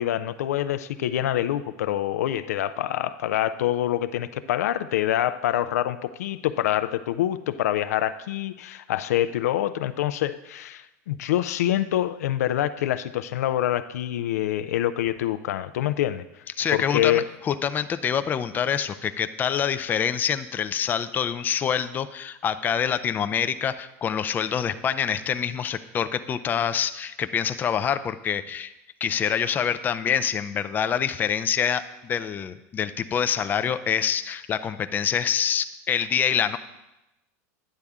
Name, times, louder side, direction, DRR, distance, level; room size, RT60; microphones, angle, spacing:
voice 1, 0.0-16.2 16.7-17.2, left 12 dB, 90° left, 13 dB, 0.4 m, -26 dB
voice 2, 16.6-28.7 29.0-36.6, left 8 dB, 20° left, 10 dB, 0.4 m, -26 dB
9.9 x 6.6 x 3.6 m, 0.94 s
supercardioid pair, 130°, 8 cm